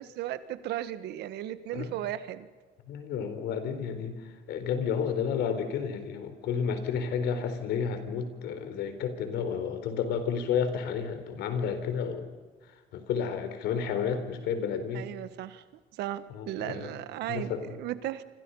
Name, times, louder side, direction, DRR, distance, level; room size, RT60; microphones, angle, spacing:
voice 1, 0.0-2.5 14.9-15.6 16.0-18.2, right 13 dB, 80° right, 13 dB, 1.5 m, -36 dB
voice 2, 2.9-12.3 12.9-15.1 16.3-16.9 17.3-17.7, left 7 dB, 80° left, 9 dB, 4.1 m, -31 dB
28.5 x 25.5 x 5.6 m, 1.3 s
cardioid pair, 110°, 17 cm